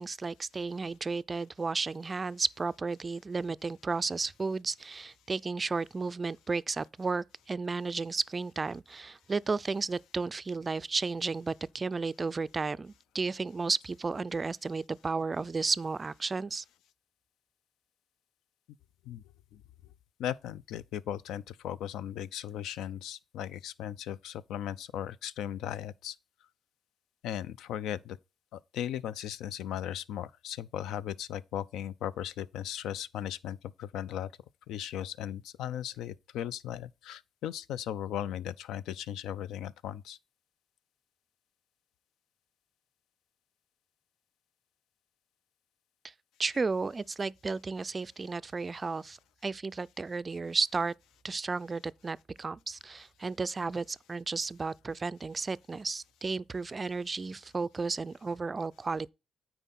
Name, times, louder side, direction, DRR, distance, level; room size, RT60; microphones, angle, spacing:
voice 1, 0.0-16.6 46.4-49.2 49.4-50.9 51.2-59.1, right 4 dB, 30° right, 0.3 m, -33 dB
voice 2, 20.2-26.2 27.2-28.2 28.5-34.3 34.7-40.2, left 10 dB, 85° left, 0.4 m, -37 dB
9.1 x 4.5 x 4.1 m
cardioid pair, 90°, 0 cm